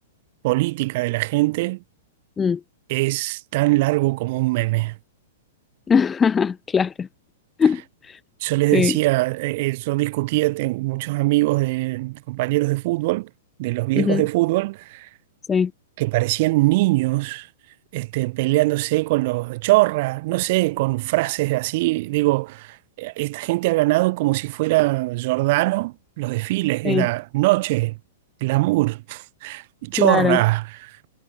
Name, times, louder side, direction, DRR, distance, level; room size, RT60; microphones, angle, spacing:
voice 1, 0.4-1.8 2.9-5.0 8.4-13.3 13.6-15.1 16.0-17.5 17.9-28.0 28.4-31.0, right 21 dB, 50° right, 3.0 m, -22 dB
voice 2, 5.9-7.1 7.6-7.8 8.7-8.9 14.0-14.2 15.5-15.7 26.8-27.1 30.0-30.4, left 6 dB, 15° left, 0.6 m, -20 dB
hypercardioid pair, 140°, 0 cm